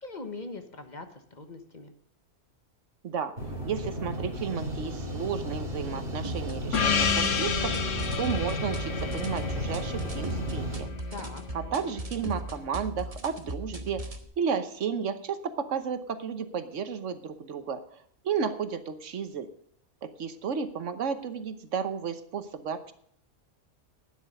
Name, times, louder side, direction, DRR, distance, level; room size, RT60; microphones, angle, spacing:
voice 1, 0.0-1.9 11.1-11.4, left 3 dB, 40° left, 7 dB, 1.2 m, -41 dB
sound 1, 3.4-10.8, equal, 50° right, 3.2 m, -34 dB
voice 2, 3.6-10.9 11.5-19.5 20.0-22.9, right 6 dB, 80° right, 10 dB, 1.3 m, -33 dB
sound 2, 6.2-14.2, right 1 dB, 30° right, 1.2 m, -38 dB
Gong, 6.7-11.5, left 7 dB, 80° left, 1.4 m, -30 dB
12.0 x 9.5 x 5.3 m, 0.67 s
omnidirectional pair, 1.3 m